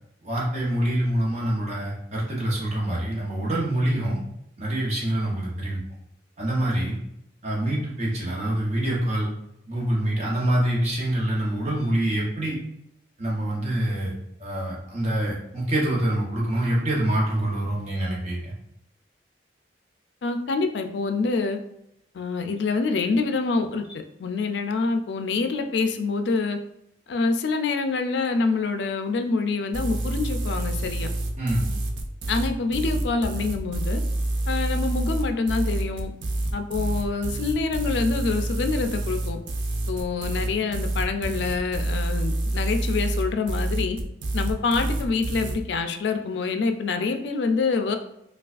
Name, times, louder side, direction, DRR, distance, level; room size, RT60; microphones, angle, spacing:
voice 1, 0.2-4.2 4.6-5.8 6.4-7.0 7.4-9.3 9.7-12.6 13.2-18.5 31.4-31.6, right 1 dB, 40° right, -4 dB, 1.0 m, -25 dB
voice 2, 20.2-21.6 22.1-23.8 24.2-26.6 27.1-31.1 32.3-34.0 34.5-36.1 36.5-39.4 39.9-44.0 44.3-48.0, left 4 dB, 75° left, 6 dB, 0.4 m, -26 dB
sound 1, 29.7-45.6, right 1 dB, 90° right, 0.5 m, -27 dB
4.6 x 2.3 x 2.4 m, 0.78 s
head